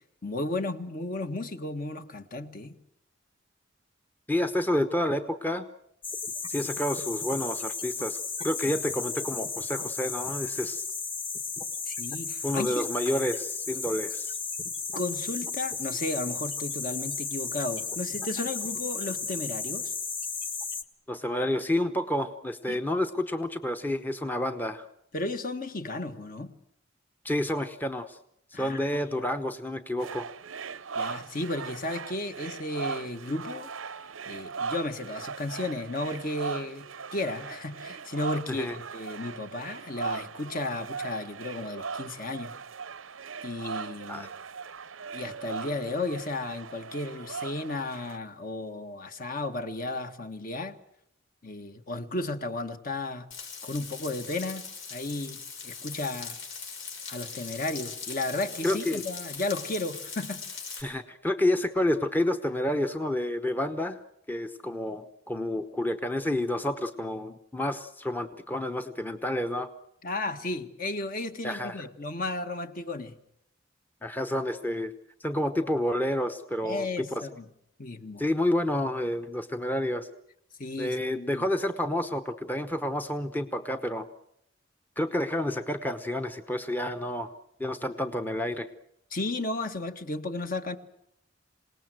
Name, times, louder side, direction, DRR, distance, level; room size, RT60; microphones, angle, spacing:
voice 1, 0.0-2.7 11.9-12.9 14.9-19.9 22.7-22.8 25.1-26.5 28.5-29.2 30.9-33.7 34.3-36.9 37.1-42.5 43.4-44.3 45.1-50.8 51.4-53.3 53.6-56.4 57.1-60.4 70.0-73.1 76.6-77.4 77.8-78.2 80.6-81.4 89.1-90.8, left 2 dB, 45° left, 8 dB, 1.5 m, -34 dB
voice 2, 4.3-5.7 6.5-8.2 8.4-10.9 12.4-14.4 21.1-24.9 27.2-28.2 28.5-30.3 38.5-38.7 44.1-44.3 58.6-59.0 60.8-64.0 64.3-69.7 71.4-71.8 74.0-74.9 75.2-77.2 78.2-80.1 80.8-84.1 85.0-87.3 87.6-88.7, left 1 dB, 10° left, 7 dB, 0.9 m, -29 dB
sound 1, 6.0-20.8, left 4 dB, 25° left, 1.4 m, -34 dB
sound 2, 30.0-48.2, right 5 dB, 85° right, 0.8 m, -39 dB
Frying (food), 53.3-60.8, left 5 dB, 80° left, 6.8 m, -40 dB
27.5 x 19.0 x 7.8 m, 0.78 s
head